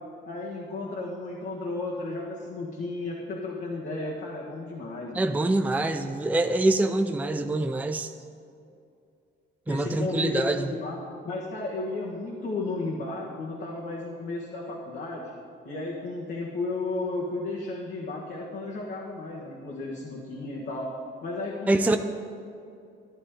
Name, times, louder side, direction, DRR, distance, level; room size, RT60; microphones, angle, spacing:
voice 1, 0.0-5.3 9.7-15.3 15.6-22.0, left 2 dB, 65° left, -4 dB, 1.6 m, -34 dB
voice 2, 5.1-8.1 9.7-10.7 21.7-22.0, right 2 dB, 10° right, 7 dB, 0.4 m, -25 dB
13.5 x 11.0 x 3.8 m, 2.5 s
cardioid pair, 90°, 20 cm